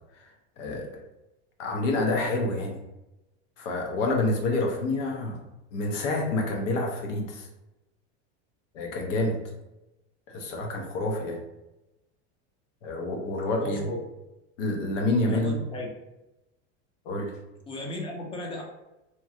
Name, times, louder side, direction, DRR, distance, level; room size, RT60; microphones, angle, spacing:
voice 1, 0.6-0.9 1.6-2.8 3.6-5.4 5.7-7.5 8.7-9.4 10.3-11.4 12.8-13.9 14.6-15.5 17.0-17.3, left 2 dB, 80° left, 2 dB, 0.9 m, -28 dB
voice 2, 13.6-14.0 15.3-15.9 17.7-18.6, left 1 dB, 15° left, -1 dB, 0.4 m, -35 dB
2.9 x 2.4 x 2.7 m, 0.97 s
supercardioid pair, 140°, 36 cm